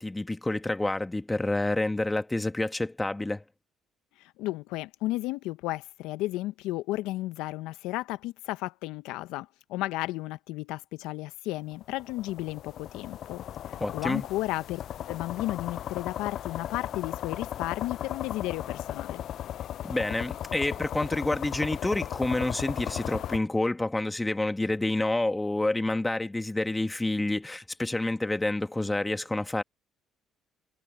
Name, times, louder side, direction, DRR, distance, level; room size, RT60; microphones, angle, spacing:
voice 1, 0.0-3.4 13.8-14.2 19.8-29.6, left 2 dB, 15° left, 2.2 m, -28 dB
voice 2, 4.2-14.8 15.1-19.2, left 17 dB, 75° left, 1.1 m, -33 dB
sound 1, 11.8-23.4, left 11 dB, 60° left, 0.4 m, -36 dB
hypercardioid pair, 60°, 0 cm